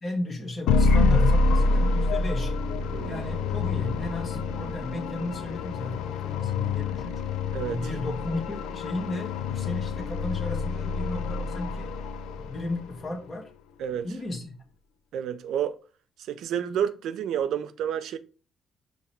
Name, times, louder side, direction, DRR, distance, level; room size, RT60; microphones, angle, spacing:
voice 1, 0.0-2.5 3.0-7.1 7.7-11.9 12.4-13.5 14.0-14.5, left 1 dB, 40° left, 1.2 m, -34 dB
sound 1, 0.7-12.8, left 3 dB, 90° left, 0.3 m, -26 dB
sound 2, 2.4-7.4, right 2 dB, 20° right, 0.5 m, -42 dB
voice 2, 2.9-3.2 7.5-7.8 13.8-14.1 15.1-15.8 16.3-18.2, right 9 dB, 80° right, 0.4 m, -29 dB
5.6 x 2.1 x 4.3 m
cardioid pair, 90°, 0 cm